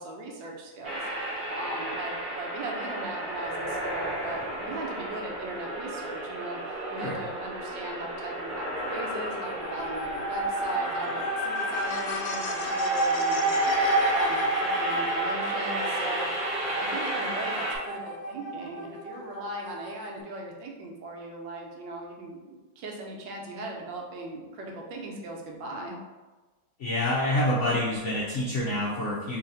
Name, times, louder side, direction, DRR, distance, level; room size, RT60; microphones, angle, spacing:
voice 1, 0.0-16.3 16.6-26.0, right 2 dB, 80° right, 0 dB, 1.4 m, -39 dB
sound 1, 0.8-17.8, right 1 dB, 40° right, 0.8 m, -33 dB
sound 2, 8.9-20.2, right 1 dB, 75° left, 1.2 m, -30 dB
voice 2, 26.8-29.4, left 1 dB, 60° left, -7 dB, 0.7 m, -27 dB
3.2 x 2.8 x 3.9 m, 1.2 s
omnidirectional pair, 2.0 m